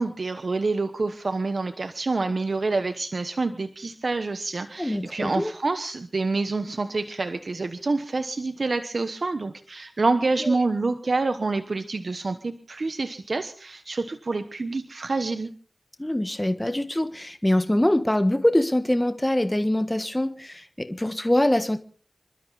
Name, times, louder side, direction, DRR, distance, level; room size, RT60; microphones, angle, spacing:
voice 1, 0.0-15.5, right 3 dB, 70° right, 9 dB, 1.1 m, -27 dB
voice 2, 4.8-5.5 10.4-10.6 16.0-21.8, left 1 dB, 20° left, 10 dB, 1.4 m, -24 dB
27.0 x 12.5 x 4.1 m, 0.41 s
cardioid pair, 45°, 0 cm